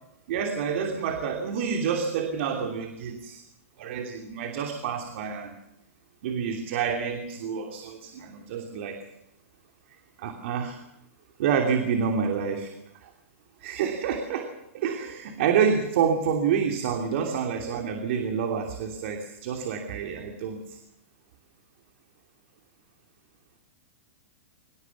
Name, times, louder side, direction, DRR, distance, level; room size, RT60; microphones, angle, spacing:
voice 1, 0.3-3.4 3.8-5.5 6.2-9.0 10.2-10.8 11.4-12.7 13.0-13.1 13.6-20.8, right 6 dB, 60° right, 4 dB, 2.9 m, -28 dB
24.5 x 19.5 x 7.2 m, 0.86 s
hypercardioid pair, 120°, 7 cm